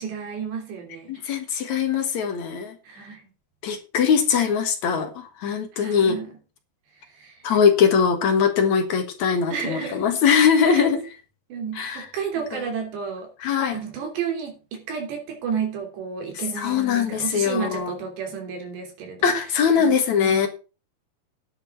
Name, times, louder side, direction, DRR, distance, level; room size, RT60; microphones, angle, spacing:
voice 1, 0.0-1.2 2.8-3.3 5.8-6.3 7.1-7.4 9.5-10.0 10.7-10.9 11.5-13.3 13.7-19.3 19.8-19.9, right 6 dB, 80° right, 3 dB, 5.4 m, -31 dB
voice 2, 1.1-2.8 3.6-6.2 7.4-11.0 11.7-12.1 12.5-12.6 13.4-13.8 16.6-18.0 19.2-20.5, left 6 dB, 55° left, 6 dB, 2.4 m, -21 dB
10.5 x 7.8 x 5.9 m, 0.33 s
omnidirectional pair, 4.9 m